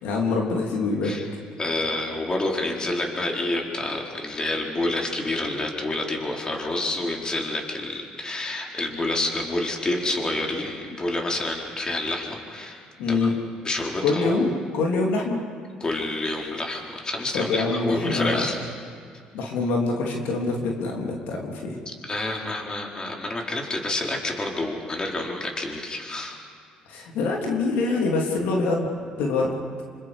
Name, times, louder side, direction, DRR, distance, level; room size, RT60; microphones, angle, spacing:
voice 1, 0.0-1.2 13.0-13.3 14.0-15.4 17.3-18.4 19.3-21.8 26.9-28.8 29.2-29.5, left 3 dB, 80° left, 0 dB, 3.4 m, -25 dB
voice 2, 1.6-13.3 13.6-14.4 15.8-18.6 21.9-26.4, left 2 dB, 25° left, 0 dB, 4.3 m, -28 dB
27.0 x 26.0 x 5.3 m, 2.2 s
supercardioid pair, 80°, 3 cm